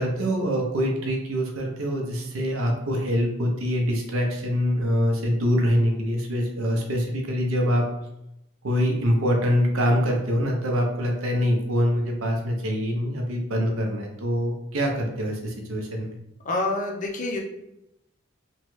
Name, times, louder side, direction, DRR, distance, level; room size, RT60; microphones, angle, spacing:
voice 1, 0.0-7.8 8.6-16.1, equal, 75° right, 1 dB, 0.6 m, -24 dB
voice 2, 16.4-17.4, left 2 dB, 35° left, 1 dB, 0.5 m, -27 dB
3.0 x 2.2 x 3.0 m, 0.86 s
head